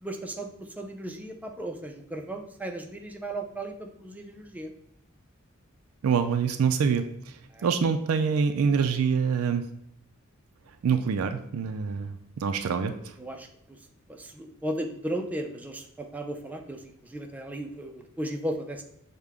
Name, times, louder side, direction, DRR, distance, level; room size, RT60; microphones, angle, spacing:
voice 1, 0.0-4.7 7.5-7.7 13.2-13.8 14.1-18.8, right 1 dB, 5° right, 4 dB, 0.4 m, -36 dB
voice 2, 6.0-7.0 7.6-9.6 10.8-13.1, right 6 dB, 80° right, 8 dB, 0.4 m, -25 dB
6.5 x 2.2 x 3.5 m, 0.73 s
head